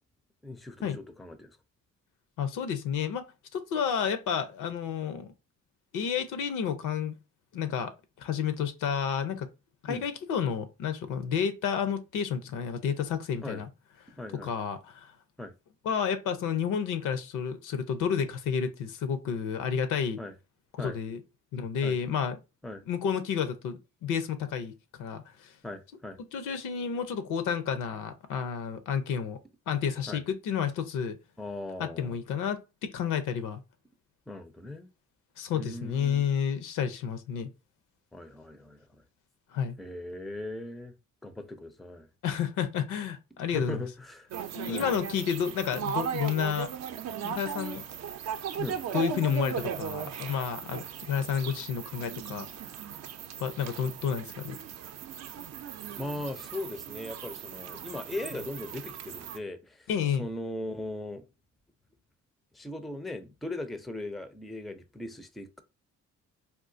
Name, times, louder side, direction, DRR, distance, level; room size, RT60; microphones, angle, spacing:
voice 1, 0.4-1.5 9.9-10.0 13.4-13.7 14.2-14.5 15.4-15.5 20.2-20.3 20.8-21.0 21.8-22.0 22.6-22.8 25.6-26.2 30.1-30.2 31.4-32.2 34.3-34.9 35.5-36.2 38.1-39.0 39.8-40.9 41.2-42.1 43.5-44.3 44.7-44.9 48.6-48.8 55.5-55.6 55.9-59.9 60.2-61.2 62.5-65.6, left 1 dB, ahead, 0.4 m, -39 dB
voice 2, 2.4-3.3 3.5-5.3 5.9-7.2 7.5-7.9 8.2-9.5 9.8-13.7 14.4-15.1 15.8-20.2 20.8-21.2 21.5-22.4 22.9-25.5 26.3-29.4 29.7-31.2 31.8-33.6 35.4-37.5 39.5-39.8 42.2-43.8 44.5-46.7 47.2-47.9 48.6-48.7 48.9-52.5 53.4-54.6 59.9-60.3, left 7 dB, 85° left, 0.6 m, -30 dB
sound 1, 44.3-59.4, right 8 dB, 60° right, 0.5 m, -38 dB
3.7 x 2.4 x 2.6 m
cardioid pair, 90°, 30 cm